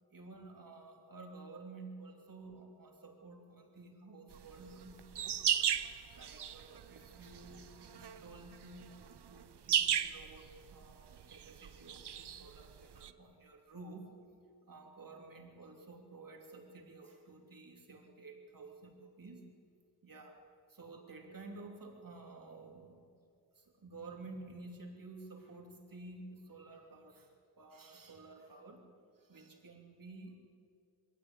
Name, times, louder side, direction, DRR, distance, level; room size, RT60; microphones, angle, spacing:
voice 1, 0.1-5.4 6.1-14.1 14.6-19.4 20.0-20.4 20.7-23.1 23.5-28.9 29.2-30.4, right 3 dB, 55° right, 2 dB, 3.3 m, -52 dB
sound 1, 4.3-13.1, right 9 dB, 85° right, 0.9 m, -36 dB
22.5 x 16.5 x 9.0 m, 2.3 s
wide cardioid pair, 110°, 39 cm